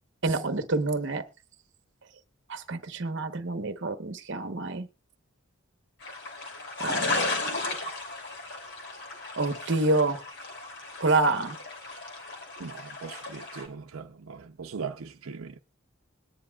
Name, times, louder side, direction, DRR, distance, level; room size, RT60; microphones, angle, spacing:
voice 1, 0.2-1.2 2.5-4.9 6.8-7.3 9.3-10.2 11.0-11.6, right 2 dB, 60° right, 1.0 m, -27 dB
sound 1, 6.0-13.7, left 3 dB, 55° left, 3.0 m, -35 dB
voice 2, 12.6-15.6, right 5 dB, 85° right, 0.6 m, -39 dB
21.5 x 10.0 x 2.3 m
head